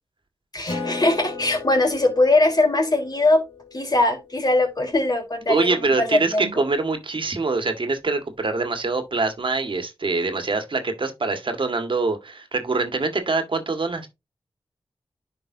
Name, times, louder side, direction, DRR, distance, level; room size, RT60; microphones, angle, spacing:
voice 1, 0.5-3.4 3.7-6.6, left 2 dB, 45° left, 3.9 m, -21 dB
Acoustic guitar, 0.7-5.6, left 3 dB, 70° left, 3.0 m, -37 dB
voice 2, 5.5-14.1, right 3 dB, 60° right, 1.8 m, -24 dB
10.5 x 5.2 x 2.7 m
cardioid pair, 50°, 10 cm